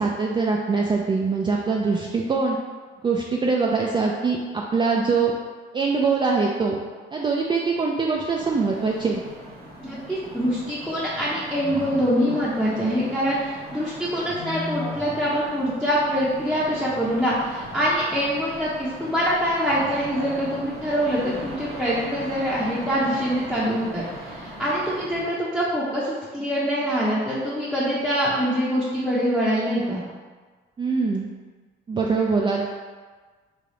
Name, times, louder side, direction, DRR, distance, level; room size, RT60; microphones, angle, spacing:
voice 1, 0.0-2.6 3.0-5.3 5.7-6.8 7.1-9.2 30.8-31.3 31.9-32.7, right 4 dB, 25° right, -2 dB, 0.3 m, -23 dB
sound 1, 8.3-25.2, equal, 50° right, 0.8 m, -38 dB
voice 2, 9.8-30.0, equal, ahead, -9 dB, 0.7 m, -24 dB
3.3 x 2.3 x 3.7 m, 1.4 s
cardioid pair, 90°, 20 cm